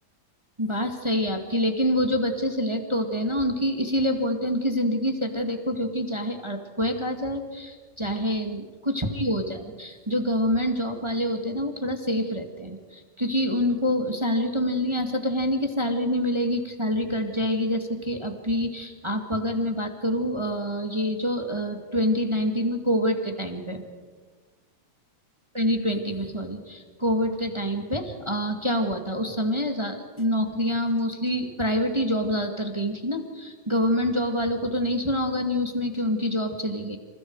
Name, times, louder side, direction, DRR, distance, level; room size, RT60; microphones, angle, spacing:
voice 1, 0.6-23.8 25.5-37.0, equal, 15° right, 3 dB, 1.3 m, -26 dB
30.0 x 28.0 x 4.9 m, 1.4 s
omnidirectional pair, 4.1 m